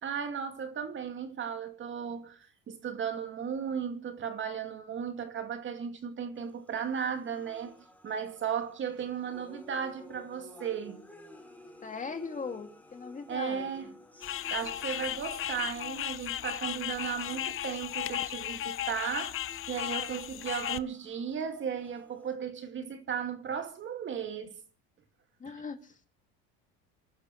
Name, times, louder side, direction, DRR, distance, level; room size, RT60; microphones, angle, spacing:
voice 1, 0.0-7.7 8.0-11.0 13.3-13.9 14.5-24.6 25.5-25.6, right 7 dB, 35° right, 2.2 m, -35 dB
sound 1, 6.3-22.3, left 1 dB, 5° left, 3.1 m, -54 dB
voice 2, 11.8-13.7 25.4-26.1, left 5 dB, 25° left, 2.3 m, -39 dB
sound 2, 14.2-20.8, left 12 dB, 40° left, 0.7 m, -35 dB
28.5 x 11.5 x 3.2 m
supercardioid pair, 115°, 32 cm